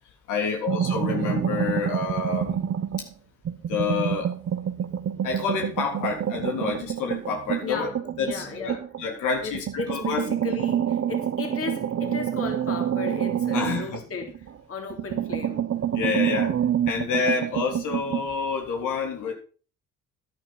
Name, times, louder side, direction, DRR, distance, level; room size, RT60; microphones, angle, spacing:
voice 1, 0.3-2.6 3.0-3.1 3.7-4.3 5.2-7.9 8.2-10.3 13.5-14.0 15.9-16.6 16.9-19.3, left 5 dB, 90° left, 3.6 m, -28 dB
sound 1, 0.7-3.1 3.5-9.1 9.5-14.6 14.9-18.3, right 9 dB, 50° right, 1.2 m, -27 dB
voice 2, 7.6-8.8 9.4-15.7 17.1-17.4, left 5 dB, 50° left, 3.6 m, -36 dB
11.5 x 11.0 x 4.2 m
cardioid pair, 90°, 30 cm